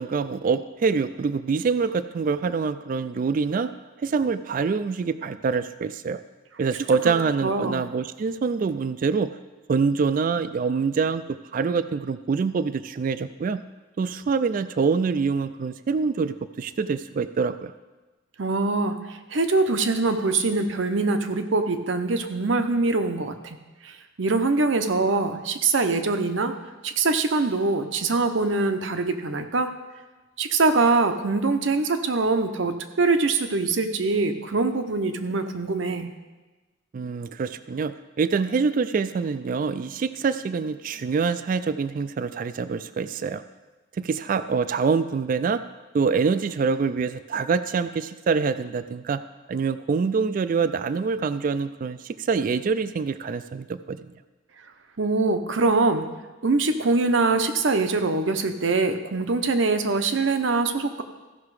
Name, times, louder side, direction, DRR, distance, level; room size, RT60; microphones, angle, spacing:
voice 1, 0.0-3.7 4.0-6.2 6.6-9.3 9.7-13.6 14.0-17.7 36.9-43.4 44.0-45.6 45.9-49.2 49.5-54.1, right 5 dB, 45° right, 12 dB, 0.3 m, -25 dB
voice 2, 7.4-7.8 18.4-19.0 19.3-23.6 23.8-26.5 26.8-29.7 30.4-36.1 55.0-56.1 56.4-61.0, right 3 dB, 70° right, 8 dB, 0.8 m, -23 dB
14.5 x 5.8 x 4.8 m, 1.2 s
head